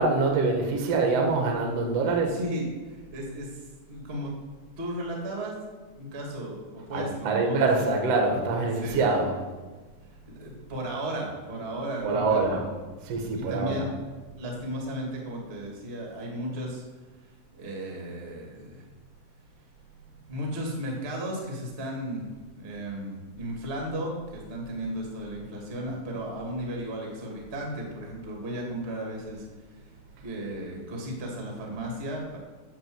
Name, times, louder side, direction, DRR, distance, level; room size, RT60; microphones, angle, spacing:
voice 1, 0.0-2.4 6.9-9.4 12.0-12.6 13.0-13.8, right 3 dB, 85° right, 2 dB, 1.4 m, -25 dB
voice 2, 2.3-4.3 4.8-5.6 5.9-7.8 8.7-9.1 10.3-12.8 13.3-14.0 14.3-16.8 17.5-18.8 20.3-22.3 22.6-29.9 30.2-32.4, right 1 dB, 65° right, -1 dB, 0.6 m, -35 dB
10.5 x 6.1 x 8.0 m, 1.3 s
omnidirectional pair, 5.5 m